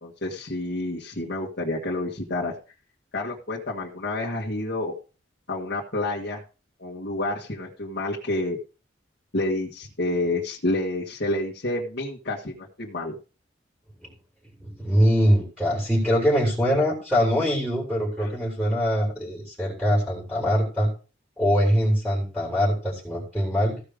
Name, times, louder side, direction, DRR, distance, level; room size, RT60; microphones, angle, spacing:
voice 1, 0.0-2.5 3.1-4.9 5.5-6.4 6.8-8.6 9.3-13.2 18.2-18.3, left 2 dB, 60° left, -4 dB, 1.7 m, -29 dB
voice 2, 14.6-20.9 21.4-23.8, equal, ahead, -3 dB, 3.9 m, -23 dB
15.0 x 5.1 x 5.0 m, 0.34 s
head